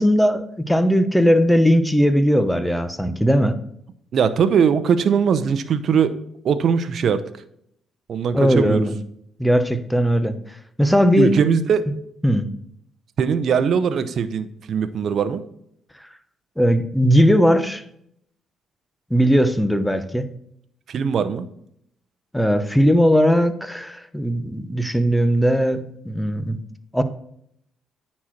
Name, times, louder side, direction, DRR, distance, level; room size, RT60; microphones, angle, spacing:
voice 1, 0.0-3.6 8.3-8.9 9.4-10.4 10.8-11.5 12.2-12.5 16.6-17.8 19.1-20.3 22.3-26.6 26.9-27.0, equal, 5° left, 10 dB, 0.9 m, -18 dB
voice 2, 4.1-6.2 6.4-7.2 8.1-8.9 11.2-11.9 13.2-15.4 20.9-21.5, right 7 dB, 60° right, 12 dB, 0.8 m, -20 dB
9.6 x 4.3 x 6.0 m, 0.70 s
cardioid pair, 90°, 0 cm